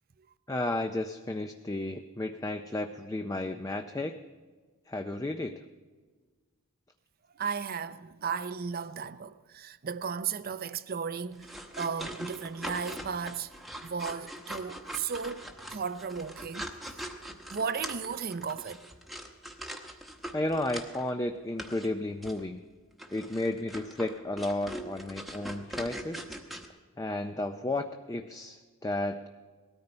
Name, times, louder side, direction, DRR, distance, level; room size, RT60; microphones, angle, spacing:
voice 1, 0.5-4.2 4.9-5.6 20.3-22.6 23.1-26.3 27.0-29.3, left 2 dB, 15° left, 0.4 m, -33 dB
voice 2, 7.3-13.5 13.8-17.1 17.5-18.8, right 6 dB, 40° right, 0.5 m, -35 dB
sound 1, 11.3-21.1 21.6-21.9 22.2-22.4 23.0-26.7, equal, ahead, 1.0 m, -42 dB
19.5 x 13.5 x 4.4 m
head